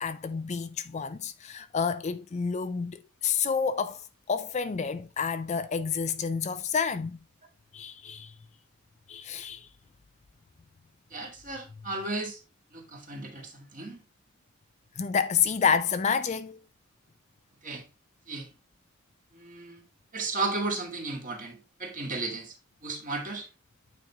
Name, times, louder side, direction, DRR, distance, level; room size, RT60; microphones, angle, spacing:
voice 1, 0.0-4.0 4.3-7.2 7.7-8.3 9.1-9.7 15.0-16.6, left 6 dB, 35° left, 0.4 m, -29 dB
voice 2, 11.1-12.4 12.7-14.0 17.6-17.8 18.3-18.5 19.3-19.8 20.1-22.6 22.8-23.5, right 3 dB, 40° right, 1.9 m, -34 dB
9.1 x 4.3 x 3.5 m
head